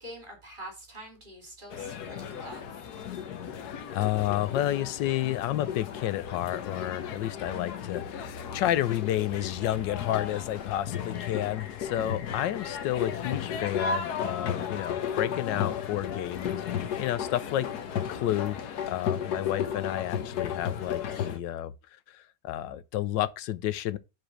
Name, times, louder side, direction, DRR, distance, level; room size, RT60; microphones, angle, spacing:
voice 1, 0.0-2.9, right 1 dB, 30° right, 2.7 m, -45 dB
sound 1, 1.7-21.4, left 8 dB, 65° left, 1.4 m, -34 dB
voice 2, 3.5-17.7 18.1-21.7 22.1-24.0, left 13 dB, 85° left, 1.3 m, -31 dB
5.0 x 4.5 x 6.0 m
omnidirectional pair, 1.9 m